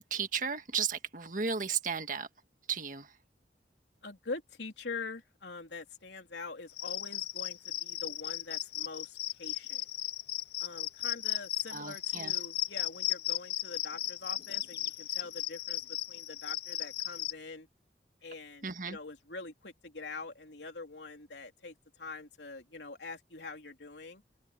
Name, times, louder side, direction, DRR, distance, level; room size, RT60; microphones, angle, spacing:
voice 1, 0.0-2.3 2.7-3.2 11.7-12.3 18.6-19.0, right 6 dB, 50° right, 1.7 m, -34 dB
voice 2, 4.0-9.9 10.6-17.7 18.2-24.2, left 3 dB, 85° left, 3.4 m, -44 dB
Cricket, 6.7-17.3, left 13 dB, 65° left, 1.4 m, -36 dB
open air
head